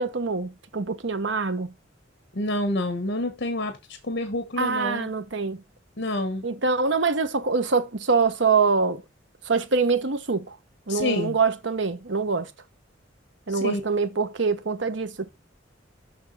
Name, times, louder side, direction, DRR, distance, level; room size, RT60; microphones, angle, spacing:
voice 1, 0.0-1.7 4.6-5.6 6.4-9.0 9.5-10.5 10.9-12.5 13.5-15.3, right 4 dB, 70° right, 1.0 m, -24 dB
voice 2, 2.3-3.8 4.0-5.1 6.0-6.4 10.9-11.4 13.5-13.8, left 1 dB, 60° left, 1.2 m, -28 dB
7.2 x 5.8 x 3.9 m
head